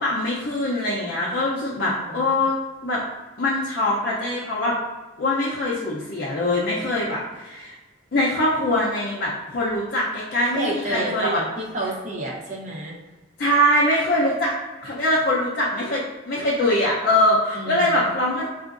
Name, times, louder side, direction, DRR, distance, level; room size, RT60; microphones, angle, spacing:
voice 1, 0.0-2.5 2.8-3.0 3.4-4.8 5.2-7.7 8.1-11.4 13.4-14.5 14.8-18.5, left 1 dB, 55° left, -5 dB, 0.6 m, -23 dB
voice 2, 1.8-2.3 10.4-13.0 17.5-18.1, right 1 dB, 40° right, -3 dB, 0.8 m, -30 dB
4.4 x 2.5 x 2.5 m, 1.2 s
head